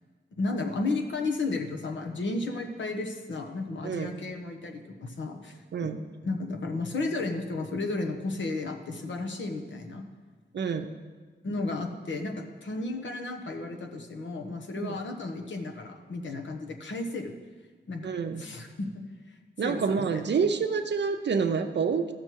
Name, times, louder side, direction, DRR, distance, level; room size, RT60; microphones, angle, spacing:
voice 1, 0.3-5.9 6.2-10.0 11.4-17.4 17.9-18.1 18.4-19.4 19.6-20.1, left 3 dB, 75° left, 4 dB, 1.2 m, -33 dB
voice 2, 10.5-10.9 14.8-15.0 18.0-18.4 19.6-22.1, right 5 dB, 65° right, 6 dB, 0.7 m, -28 dB
14.5 x 6.5 x 4.6 m, 1.4 s
wide cardioid pair, 115°, 19 cm